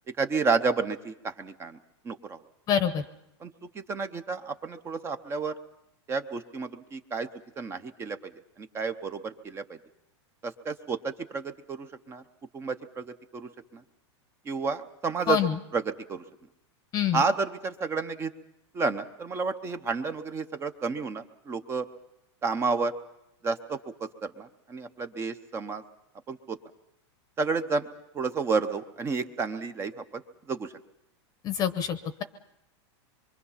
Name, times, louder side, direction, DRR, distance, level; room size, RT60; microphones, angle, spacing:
voice 1, 0.2-1.8 2.0-2.4 3.4-5.5 6.1-7.3 7.6-8.2 8.6-9.6 10.4-12.2 12.5-13.8 14.5-15.4 15.7-16.2 17.1-18.3 18.7-21.9 22.4-22.9 23.4-25.8 26.3-26.6 27.4-27.9 28.1-30.2 30.5-30.7, right 4 dB, 15° right, 10 dB, 0.7 m, -31 dB
voice 2, 2.7-3.0 15.3-15.6 16.9-17.2 31.4-32.2, left 9 dB, 25° left, 12 dB, 0.9 m, -26 dB
24.5 x 24.0 x 5.6 m, 0.84 s
supercardioid pair, 160°, 15 cm